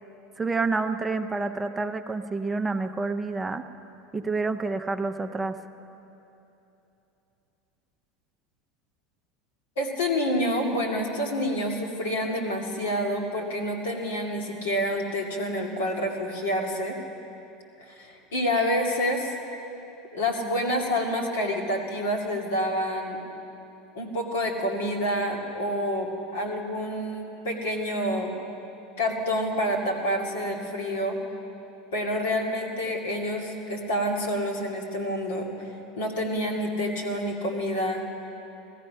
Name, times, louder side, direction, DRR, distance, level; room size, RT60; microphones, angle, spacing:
voice 1, 0.4-3.7 4.1-5.6, right 3 dB, 15° right, 7 dB, 0.7 m, -28 dB
voice 2, 9.8-17.0 17.8-19.3 20.1-23.2 23.9-28.3 29.0-31.2 31.9-38.0, equal, 80° left, 1 dB, 2.3 m, -28 dB
17.0 x 14.0 x 5.7 m, 3.0 s
hypercardioid pair, 90°, 0 cm